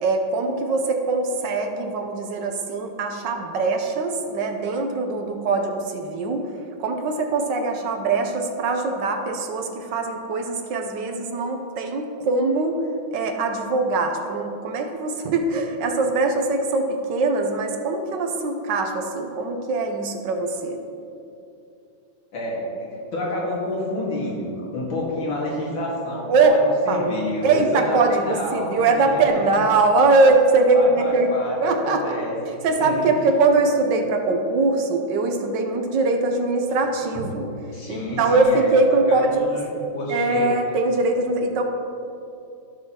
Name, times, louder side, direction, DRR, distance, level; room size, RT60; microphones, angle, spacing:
voice 1, 0.0-6.5 6.8-12.8 13.1-20.8 26.3-26.6 26.9-27.0 27.4-31.3 31.6-32.2 32.6-37.5 37.9-39.4 40.1-41.6, right 3 dB, 70° right, 4 dB, 1.4 m, -22 dB
voice 2, 22.3-29.6 30.7-33.1 37.7-40.5, left 1 dB, 85° left, -5 dB, 2.6 m, -29 dB
14.5 x 6.3 x 2.9 m, 2.7 s
omnidirectional pair, 2.2 m